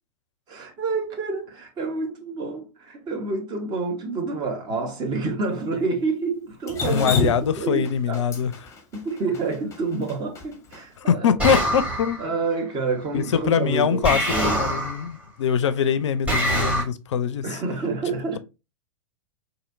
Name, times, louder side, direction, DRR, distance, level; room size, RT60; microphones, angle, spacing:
voice 1, 0.5-7.3 7.6-8.2 8.9-11.3 12.2-14.6 17.4-18.4, right 3 dB, 25° right, 0.9 m, -28 dB
Drip, 6.7-10.8, left 4 dB, 15° left, 0.8 m, -29 dB
voice 2, 6.8-8.7 11.0-12.2 13.1-17.6, left 7 dB, 60° left, 0.4 m, -23 dB
sound 1, 11.4-12.3 14.0-15.1 16.3-16.8, right 1 dB, 10° right, 1.6 m, -24 dB
4.1 x 2.7 x 2.5 m
figure-of-eight pair, 100°, 17 cm